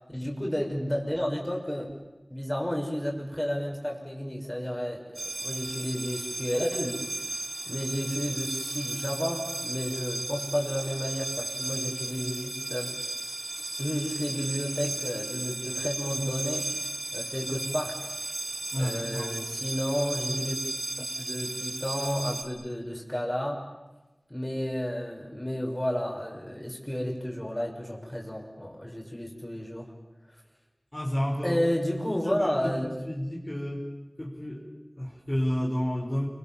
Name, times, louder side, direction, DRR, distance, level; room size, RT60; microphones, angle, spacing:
voice 1, 0.1-1.9 2.3-7.1 7.7-12.9 13.8-16.7 17.1-18.1 18.8-20.6 21.2-23.6 24.3-29.9 31.4-32.8, equal, 15° left, 0 dB, 6.5 m, -31 dB
sound 1, 5.2-22.4, right 2 dB, 75° right, 4.0 m, -35 dB
voice 2, 18.7-19.4 30.9-31.6 32.1-33.9 34.2-34.7 35.0-36.3, equal, 35° left, -3 dB, 5.6 m, -31 dB
30.0 x 25.5 x 7.5 m, 1.1 s
wide cardioid pair, 45°, 0 cm